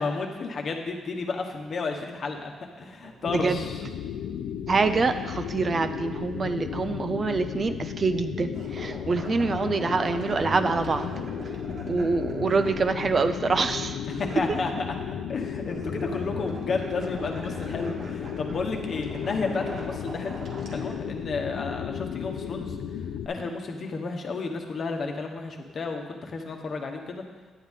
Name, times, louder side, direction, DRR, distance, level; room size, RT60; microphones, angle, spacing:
voice 1, 0.0-3.8 14.1-14.9 15.3-20.3 20.7-22.8 23.2-27.2, left 4 dB, 50° left, 3 dB, 1.1 m, -32 dB
sound 1, 2.1-2.2 2.7-3.7 4.9-5.3 6.8-6.9 7.6-7.9 8.4-13.5 14.1-15.2 15.5-20.9, right 2 dB, 60° right, 1.9 m, -41 dB
sound 2, 3.3-23.3, left 8 dB, 85° left, 0.5 m, -34 dB
voice 2, 3.3-3.7 4.7-11.1 11.9-14.0, right 4 dB, 40° right, 9 dB, 0.5 m, -25 dB
9.9 x 8.0 x 3.7 m, 1.4 s
cardioid pair, 90°, 0 cm